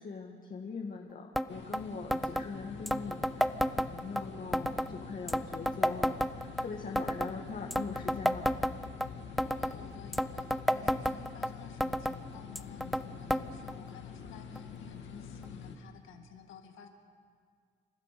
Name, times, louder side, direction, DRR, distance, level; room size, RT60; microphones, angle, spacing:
voice 1, 0.0-8.5, left 4 dB, 45° left, 1 dB, 1.9 m, -42 dB
sound 1, 1.4-1.5 1.7-1.8 2.1-2.5 2.9-4.2 4.5-4.9 5.3-6.7 7.0-7.3 7.7-9.1 9.4-9.8 10.1-11.5 11.8-12.2 12.6-13.0 13.3-13.4 13.7-13.8 14.6-14.7 15.4-15.5, equal, ahead, 0.6 m, -30 dB
sound 2, 1.5-15.8, left 6 dB, 65° left, 2.4 m, -46 dB
voice 2, 9.4-16.9, left 8 dB, 85° left, 5 dB, 2.1 m, -52 dB
30.0 x 13.0 x 6.8 m, 2.1 s
cardioid pair, 90°, 20 cm